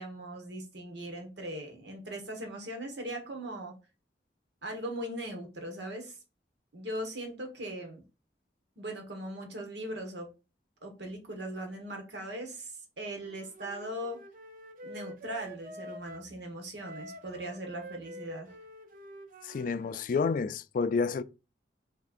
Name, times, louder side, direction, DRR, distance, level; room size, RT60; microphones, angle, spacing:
voice 1, 0.0-3.7 4.6-6.2 6.7-8.0 8.8-10.3 10.8-14.2 14.8-18.5, right 1 dB, 75° right, 1.4 m, -39 dB
Wind instrument woodwind instrument, 13.1-16.3 16.8-20.1, right 1 dB, 50° right, 0.7 m, -47 dB
voice 2, 19.4-21.2, left 5 dB, 50° left, 0.3 m, -29 dB
6.1 x 3.3 x 2.5 m
head